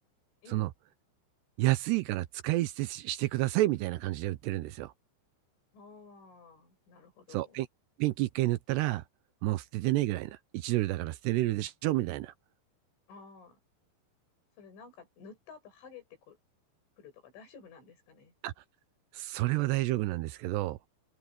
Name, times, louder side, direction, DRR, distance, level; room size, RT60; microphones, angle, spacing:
voice 1, 1.6-4.9 7.3-7.7 8.0-9.0 9.4-12.3 18.4-18.5 19.1-20.8, right 17 dB, 80° right, 2.5 m, -30 dB
voice 2, 5.7-7.6 13.1-13.6 14.6-16.4 17.0-18.3, left 5 dB, 75° left, 9.0 m, -53 dB
omnidirectional pair, 5.5 m